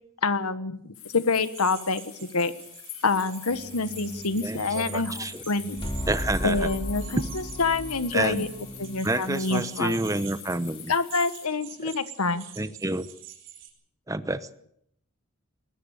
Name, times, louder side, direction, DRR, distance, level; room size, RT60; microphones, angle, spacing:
voice 1, 0.2-2.0 2.3-2.5 3.0-5.9 6.4-10.0 10.9-12.4, left 4 dB, 90° left, 12 dB, 1.4 m, -27 dB
sound 1, 0.9-11.5, left 13 dB, 70° left, 2.4 m, -45 dB
sound 2, 1.3-13.7, right 10 dB, 55° right, 4.7 m, -46 dB
sound 3, 3.5-10.1, equal, 25° left, 2.3 m, -37 dB
voice 2, 4.4-5.4 6.1-6.7 8.1-8.5 9.0-10.9 11.8-11.9 12.6-13.1 14.1-14.5, right 2 dB, 15° right, 13 dB, 0.9 m, -29 dB
21.0 x 20.5 x 6.6 m, 0.70 s
head